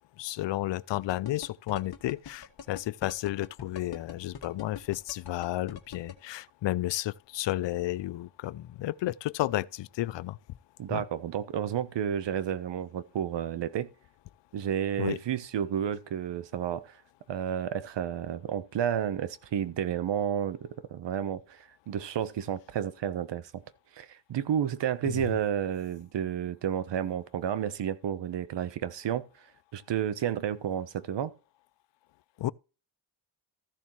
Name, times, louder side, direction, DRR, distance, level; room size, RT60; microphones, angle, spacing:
voice 1, 0.2-10.4 10.9-11.0 15.0-15.2 25.0-25.3 32.4-32.5, left 15 dB, 75° left, 0.5 m, -32 dB
sound 1, 0.9-6.1, left 7 dB, 60° left, 1.6 m, -42 dB
voice 2, 10.8-13.9 14.5-17.0 17.3-23.6 23.9-29.2 29.7-31.3, right 9 dB, 75° right, 1.0 m, -31 dB
14.5 x 7.1 x 3.2 m
cardioid pair, 105°, 43 cm